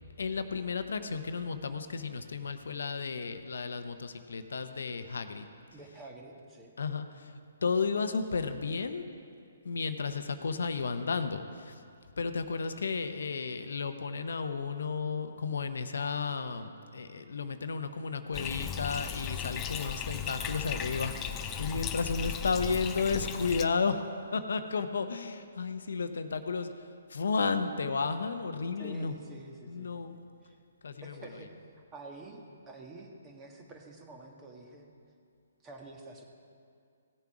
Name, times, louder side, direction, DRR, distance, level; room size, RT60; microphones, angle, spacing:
voice 1, 0.2-5.5 6.8-7.3 7.6-9.0 9.6-11.8 12.2-26.7 27.1-29.1 29.7-30.2 30.8-31.3, left 4 dB, 75° left, 9 dB, 0.7 m, -33 dB
voice 2, 5.7-6.7 28.8-30.5 31.0-32.4 32.7-34.9 35.6-36.2, right 2 dB, 20° right, 1 dB, 1.5 m, -49 dB
Bathtub (filling or washing), 18.3-23.6, left 8 dB, 20° left, 0.6 m, -36 dB
17.0 x 7.1 x 4.8 m, 2.3 s
hypercardioid pair, 145°, 0 cm